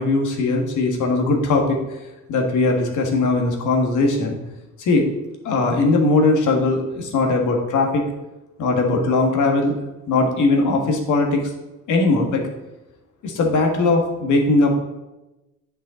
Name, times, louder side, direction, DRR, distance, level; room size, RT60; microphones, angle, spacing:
voice 1, 0.0-1.8 2.3-4.4 4.8-5.1 5.4-8.0 8.6-9.7 10.1-11.4 11.9-12.4 13.2-14.8, left 3 dB, 80° left, 1 dB, 1.6 m, -19 dB
9.3 x 5.7 x 3.8 m, 1.0 s
cardioid pair, 90°, 30 cm